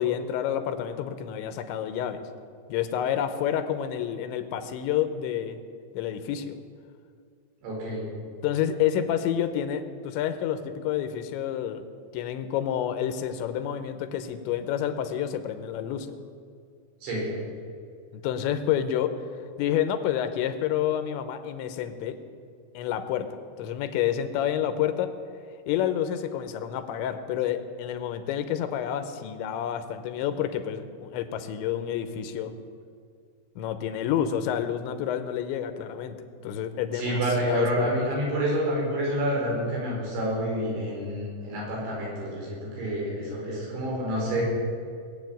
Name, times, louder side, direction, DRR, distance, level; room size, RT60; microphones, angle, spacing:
voice 1, 0.0-2.2 2.7-5.6 5.9-6.6 8.4-11.8 12.1-16.2 18.1-19.1 19.6-22.2 22.7-23.3 23.6-25.1 25.7-32.5 33.6-36.2 36.4-37.9, left 10 dB, 80° left, 9 dB, 3.2 m, -29 dB
voice 2, 7.6-8.0 17.0-17.3 36.9-44.4, right 1 dB, 85° right, -3 dB, 7.0 m, -28 dB
19.5 x 7.9 x 9.3 m, 2.2 s
omnidirectional pair, 5.3 m